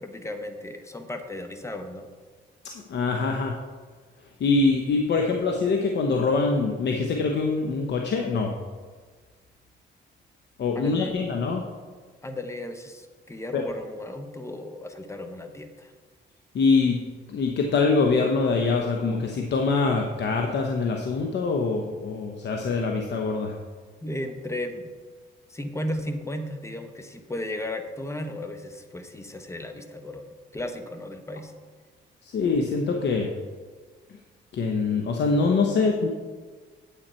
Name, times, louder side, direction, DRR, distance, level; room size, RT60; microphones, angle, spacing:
voice 1, 0.0-2.1 10.7-11.2 12.2-15.9 24.0-24.9 25.5-31.5, left 1 dB, 15° left, 7 dB, 1.0 m, -35 dB
voice 2, 2.9-3.6 4.4-8.5 10.6-11.6 13.5-13.6 16.5-17.0 17.3-23.5 32.2-33.3 34.5-36.1, left 4 dB, 60° left, 2 dB, 1.0 m, -24 dB
9.0 x 8.3 x 4.4 m, 1.5 s
cardioid pair, 90°, 20 cm